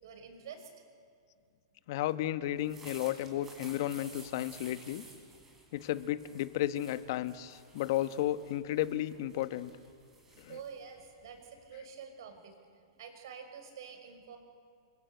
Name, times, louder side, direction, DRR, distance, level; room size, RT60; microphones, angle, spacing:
voice 1, 0.0-0.7 10.4-14.4, right 6 dB, 65° right, 6 dB, 6.0 m, -48 dB
voice 2, 1.9-5.0 5.7-9.7 10.4-10.6, left 13 dB, 50° left, 13 dB, 1.3 m, -33 dB
sound 1, 2.5-11.8, right 3 dB, 15° right, 5.1 m, -55 dB
29.0 x 24.5 x 8.1 m, 2.3 s
hypercardioid pair, 145°, 2 cm